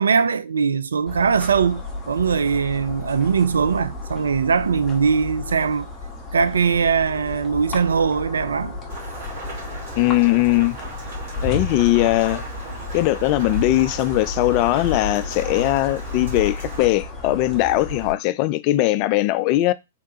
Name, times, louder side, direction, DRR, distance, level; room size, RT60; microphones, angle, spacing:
voice 1, 0.0-5.9 6.3-8.7, right 6 dB, 70° right, 0.3 m, -21 dB
sound 1, 1.1-18.1, left 2 dB, 15° left, 1.3 m, -32 dB
Rain, 8.9-16.8, right 2 dB, 45° right, 2.5 m, -38 dB
voice 2, 10.0-10.8 11.4-12.4 12.9-19.7, left 17 dB, 40° left, 0.3 m, -20 dB
3.6 x 3.5 x 2.9 m
figure-of-eight pair, 105°, 0 cm